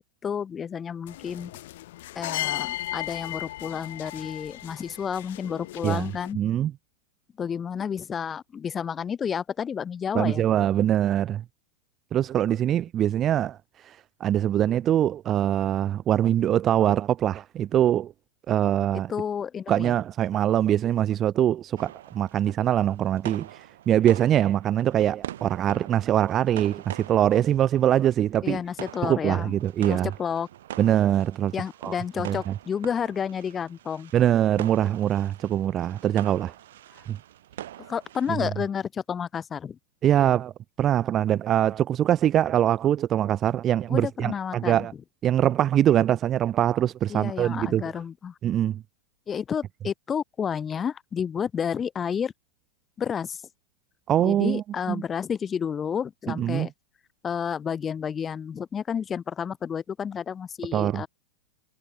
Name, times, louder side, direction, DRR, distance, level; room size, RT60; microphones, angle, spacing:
voice 1, 0.0-1.5 2.2-6.4 7.4-10.4 19.1-19.9 28.4-29.5 29.9-30.5 31.5-34.1 37.8-39.8 43.9-44.9 47.1-48.3 49.3-52.3 53.0-53.4 54.2-56.7 57.2-61.1, left 7 dB, 15° left, 2.2 m, -31 dB
sound 1, 1.1-6.3, left 16 dB, 60° left, 3.3 m, -36 dB
voice 2, 6.3-6.7 10.1-11.4 12.1-13.6 13.8-18.1 18.5-19.1 19.7-28.6 29.0-30.1 30.8-31.5 31.8-31.9 32.3-32.5 34.1-36.5 37.1-37.2 38.4-38.5 40.0-40.5 40.8-44.9 45.2-47.8 48.4-48.8 54.1-55.0 56.4-56.7 60.7-61.0, right 11 dB, 20° right, 0.5 m, -23 dB
sound 2, 21.8-38.8, right 12 dB, 70° right, 2.4 m, -44 dB
supercardioid pair, 165°, 0 cm